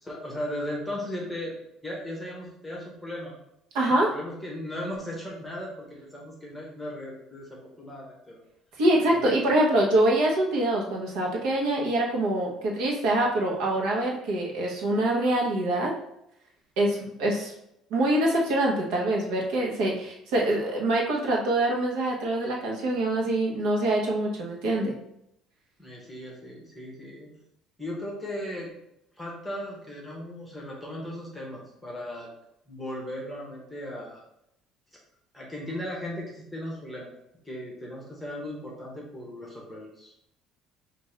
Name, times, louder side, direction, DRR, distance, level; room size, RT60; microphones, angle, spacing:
voice 1, 0.0-1.5 1.8-3.3 3.8-8.4 9.1-9.6 25.8-27.3 27.8-28.7 29.2-32.3 32.7-34.2 35.3-37.1 37.4-40.1, left 1 dB, 5° left, -3 dB, 0.9 m, -37 dB
voice 2, 3.7-4.1 8.8-15.9 16.8-17.5 17.9-24.9, right 1 dB, 75° right, -1 dB, 1.0 m, -25 dB
5.2 x 2.5 x 3.2 m, 0.79 s
cardioid pair, 180°, 0 cm